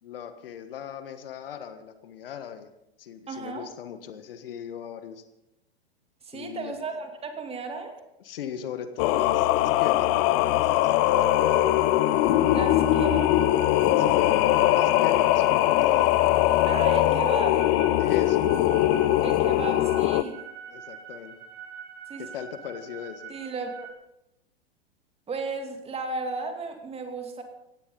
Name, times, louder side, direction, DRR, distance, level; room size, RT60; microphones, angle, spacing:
voice 1, 0.0-2.7 3.0-5.2 6.3-6.7 8.2-11.7 14.0-16.3 17.0-17.2 18.0-18.5 20.7-21.3 22.2-23.3, left 8 dB, 60° left, 10 dB, 1.6 m, -38 dB
voice 2, 3.3-3.7 6.2-7.9 12.5-13.3 16.7-17.6 19.2-20.4 22.1-22.2 23.3-23.7 25.3-27.4, right 4 dB, 20° right, 4 dB, 2.6 m, -34 dB
Singing, 9.0-20.2, left 14 dB, 35° left, 0.8 m, -21 dB
sound 1, 10.8-23.9, right 7 dB, 55° right, 2.8 m, -44 dB
17.5 x 16.0 x 4.0 m, 0.85 s
figure-of-eight pair, 95°, 32 cm